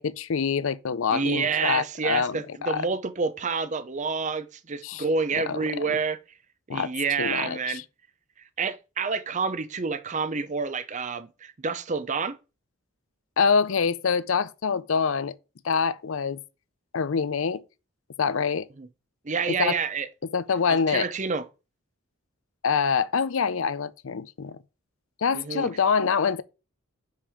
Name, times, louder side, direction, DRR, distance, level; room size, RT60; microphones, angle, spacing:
voice 1, 0.0-2.9 4.8-5.0 5.3-6.0 6.7-6.9 7.2-7.8 13.4-15.3 15.6-16.4 16.9-17.6 18.2-18.7 19.5-19.7 20.3-21.1 22.6-24.6 25.2-26.4, left 6 dB, 70° left, 0.5 m, -25 dB
voice 2, 1.1-6.2 6.7-7.8 8.6-12.4 18.8-18.9 19.2-20.1 20.7-21.4 25.3-25.7, right 5 dB, 35° right, 0.6 m, -28 dB
5.5 x 5.3 x 4.9 m
head